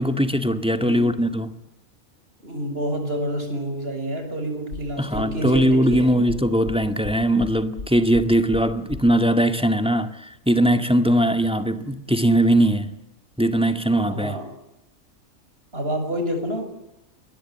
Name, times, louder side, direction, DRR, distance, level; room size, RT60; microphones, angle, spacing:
voice 1, 0.0-1.6 5.0-13.0 13.4-14.4, right 1 dB, 5° right, 1.8 m, -20 dB
voice 2, 0.8-1.1 2.4-6.2 14.1-14.5 15.7-16.6, equal, 45° right, 6.9 m, -28 dB
sound 1, 4.7-9.1, left 3 dB, 75° left, 3.9 m, -35 dB
27.5 x 21.5 x 8.9 m
omnidirectional pair, 1.4 m